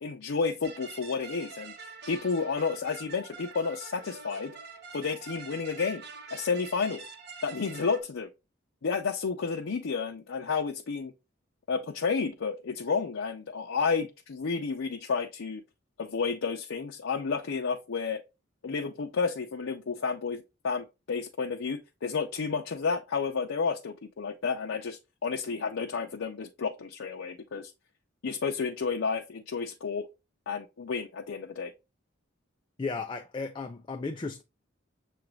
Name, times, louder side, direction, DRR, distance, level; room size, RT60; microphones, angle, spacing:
voice 1, 0.0-1.7 2.1-4.5 4.9-6.0 6.3-7.1 7.4-8.3 8.8-11.1 11.7-15.6 16.0-18.2 18.6-27.7 28.2-30.1 30.5-31.7, left 5 dB, 80° left, 0.5 m, -31 dB
sound 1, 0.6-8.0, right 5 dB, 55° right, 0.7 m, -45 dB
voice 2, 32.8-34.4, left 4 dB, 25° left, 0.3 m, -35 dB
6.8 x 2.5 x 3.1 m
head